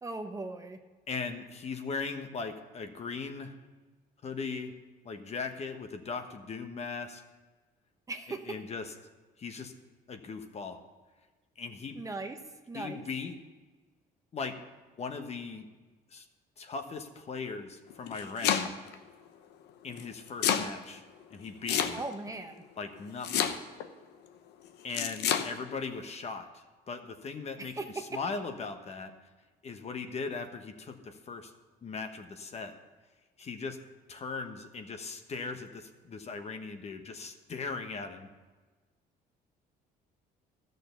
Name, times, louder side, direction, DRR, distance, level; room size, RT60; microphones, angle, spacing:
voice 1, 0.0-0.8 8.1-8.6 11.9-12.4 12.7-13.0 21.9-22.6 27.6-28.0, right 3 dB, 20° right, 5 dB, 0.9 m, -38 dB
voice 2, 1.1-3.6 4.2-4.7 5.0-7.2 8.3-8.9 9.4-9.7 10.1-10.8 11.6-12.0 12.7-13.4 14.3-14.5 15.0-15.7 16.1-16.2 16.6-18.7 19.8-21.0 21.3-22.0 22.8-23.5 24.8-29.1 29.6-31.5 31.8-32.7 33.4-33.8 34.1-38.3, left 4 dB, 40° left, 7 dB, 1.2 m, -39 dB
Domestic sounds home sounds, 17.9-18.9 20.0-20.7 21.7-22.3 23.2-23.9 24.9-25.5, left 9 dB, 85° left, 0.9 m, -28 dB
12.5 x 6.7 x 6.8 m, 1.3 s
cardioid pair, 110°, 17 cm